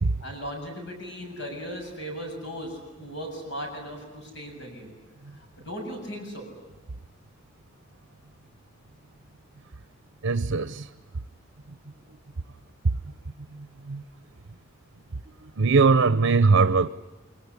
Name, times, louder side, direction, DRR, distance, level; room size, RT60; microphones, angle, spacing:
voice 1, 0.2-4.9 5.3-6.4, equal, 60° left, 7.4 m, -37 dB
voice 2, 10.2-10.9 12.8-13.0 13.5-14.0 15.4-16.9, right 4 dB, 90° right, 0.8 m, -21 dB
25.0 x 24.0 x 9.8 m
head